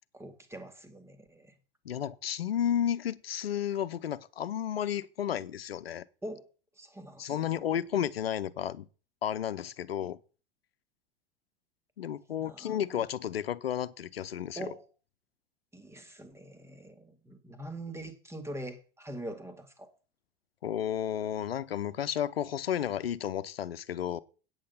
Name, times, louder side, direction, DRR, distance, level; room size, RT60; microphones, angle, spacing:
voice 1, 0.1-1.6 6.2-6.5 6.8-7.7 12.4-13.0 14.6-14.9 15.7-19.9, right 1 dB, 10° right, 2.1 m, -43 dB
voice 2, 1.8-6.1 7.2-8.9 9.2-10.2 12.0-14.7 20.6-24.2, left 10 dB, 80° left, 0.8 m, -32 dB
8.9 x 8.4 x 5.6 m
hypercardioid pair, 85°, 29 cm